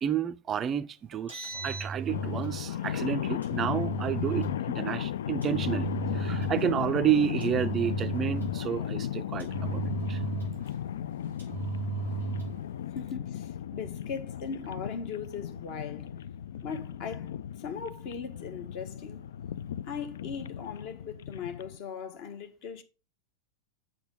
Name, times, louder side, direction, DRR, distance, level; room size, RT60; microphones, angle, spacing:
voice 1, 0.0-9.8 10.1-10.2, right 9 dB, 25° right, 0.4 m, -30 dB
Engine, 1.1-2.6 3.4-4.6 5.4-6.7 7.4-8.7 9.4-10.7 11.4-12.6, right 4 dB, 90° left, 4.8 m, -35 dB
sound 1, 2.1-21.8, left 10 dB, 60° left, 0.3 m, -35 dB
voice 2, 12.9-16.1 16.6-19.2 19.8-22.8, left 6 dB, 45° left, 1.5 m, -39 dB
8.0 x 6.3 x 3.6 m
figure-of-eight pair, 90°, 0 cm